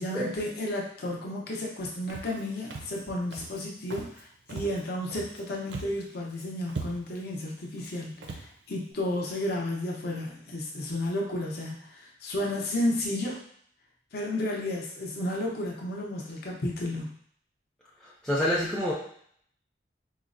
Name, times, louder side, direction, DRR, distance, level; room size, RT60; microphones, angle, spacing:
voice 1, 0.0-8.4 8.7-13.4 14.1-17.2, left 1 dB, 60° left, -2 dB, 0.6 m, -32 dB
Walk footsteps, 2.1-2.4 2.7-3.0 3.3-3.6 3.9-4.2 4.5-5.4 5.7-6.0 6.3-6.4 6.7-7.2 7.8-7.9 8.2-8.5, right 3 dB, 80° right, 0.5 m, -39 dB
voice 2, 18.2-18.9, left 1 dB, 5° left, -7 dB, 0.4 m, -26 dB
4.3 x 2.0 x 2.5 m, 0.64 s
head